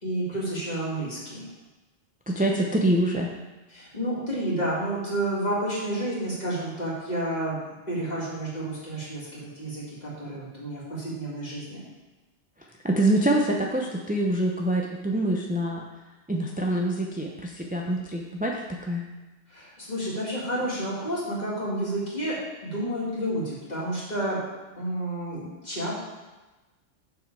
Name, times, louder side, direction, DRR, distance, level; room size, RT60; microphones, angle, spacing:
voice 1, 0.0-1.5 3.7-11.8 19.5-22.4 22.6-24.4 24.7-25.9, right 1 dB, 35° left, -7 dB, 2.7 m, -30 dB
voice 2, 2.3-3.3 12.8-15.9 16.3-19.0, right 1 dB, 10° right, -1 dB, 0.5 m, -25 dB
6.9 x 6.8 x 4.7 m, 1.2 s
omnidirectional pair, 1.2 m